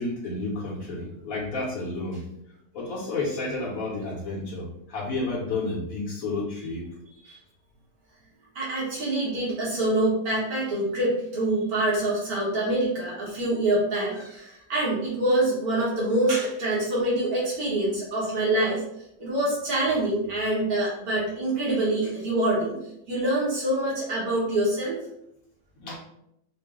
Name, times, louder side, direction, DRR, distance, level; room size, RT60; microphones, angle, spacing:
voice 1, 0.0-2.2 2.7-6.8 25.8-26.0, left 2 dB, 70° left, -4 dB, 1.2 m, -31 dB
voice 2, 8.6-18.8 19.2-22.8 23.1-25.0, right 1 dB, 85° right, -7 dB, 1.7 m, -25 dB
4.4 x 2.1 x 3.6 m, 0.79 s
omnidirectional pair, 1.6 m